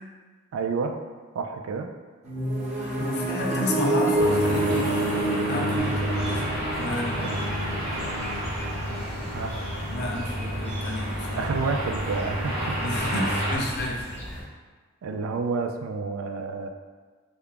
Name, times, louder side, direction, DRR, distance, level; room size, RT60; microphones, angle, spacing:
voice 1, 0.5-1.0 1.3-1.9 6.0-6.1 6.8-6.9 7.2-7.5 9.3-9.5 11.4-12.8 15.0-16.7, right 4 dB, 80° right, 5 dB, 0.3 m, -30 dB
sound 1, 2.2-8.0, right 2 dB, 35° right, 0.7 m, -27 dB
voice 2, 2.7-4.9 5.5-7.3 9.9-11.5 12.8-14.1, left 1 dB, 55° left, -1 dB, 0.6 m, -31 dB
sound 2, 4.2-13.5, equal, 50° right, 1.4 m, -30 dB
sound 3, 5.7-14.4, equal, 15° left, 0.9 m, -38 dB
3.6 x 3.5 x 2.2 m, 1.4 s
head